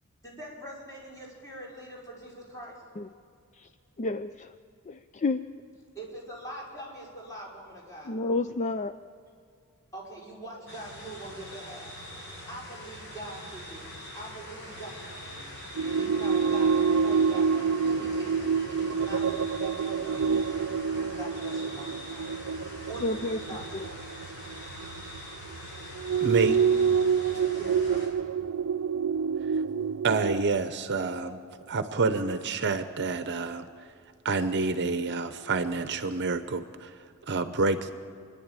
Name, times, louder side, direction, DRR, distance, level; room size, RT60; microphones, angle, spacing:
voice 1, 0.2-2.8 6.0-8.2 9.9-12.0 12.5-13.9 14.1-15.1 15.8-20.2 21.2-22.3 22.9-23.8 27.5-28.1, right 1 dB, 15° left, -5 dB, 5.4 m, -43 dB
voice 2, 4.0-4.5 4.9-5.4 8.1-8.9 23.0-23.4 23.7-23.8, left 3 dB, 30° left, 11 dB, 0.4 m, -29 dB
sound 1, 10.7-28.1, equal, 55° left, 6.2 m, -43 dB
sound 2, 15.8-25.0 26.0-30.4, right 6 dB, 65° right, 0.4 m, -27 dB
voice 3, 26.2-26.6 30.0-31.4 31.7-33.7 34.2-36.9 37.3-37.9, right 3 dB, 50° right, 10 dB, 0.8 m, -28 dB
27.0 x 11.0 x 8.9 m, 2.4 s
head